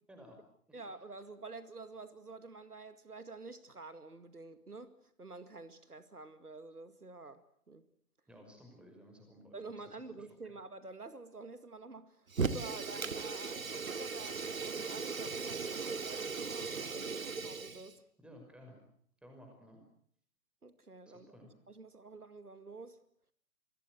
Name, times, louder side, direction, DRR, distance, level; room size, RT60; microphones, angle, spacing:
voice 1, 0.7-7.9 9.5-18.0 20.6-21.4 21.7-23.0, right 3 dB, 85° right, 2.2 m, -49 dB
voice 2, 8.3-10.4 18.2-18.8 19.2-19.8 21.1-21.5, equal, ahead, 5.8 m, -56 dB
Fire, 12.3-17.9, right 5 dB, 65° right, 2.3 m, -38 dB
28.0 x 21.5 x 7.9 m
figure-of-eight pair, 130°, 45 cm